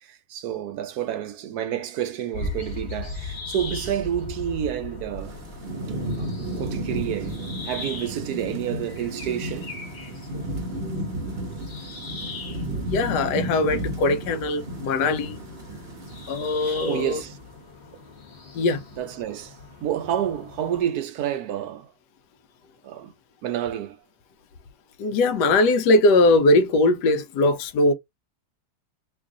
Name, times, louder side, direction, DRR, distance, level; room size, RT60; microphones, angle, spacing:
voice 1, 0.0-5.4 6.2-6.3 6.6-7.4 7.6-9.7 15.7-15.8 16.6-17.4 19.0-19.6 19.8-21.9 22.8-23.1 23.4-24.0, right 10 dB, 70° right, 1.1 m, -29 dB
sound 1, 2.3-20.8, left 3 dB, 40° left, 1.3 m, -39 dB
Thunderstorm / Rain, 5.2-17.5, right 1 dB, 45° right, 0.9 m, -33 dB
voice 2, 10.5-11.0 12.8-15.4 16.3-17.2 18.5-18.8 25.0-27.9, left 2 dB, 75° left, 1.1 m, -21 dB
3.1 x 2.4 x 3.6 m
omnidirectional pair, 1.9 m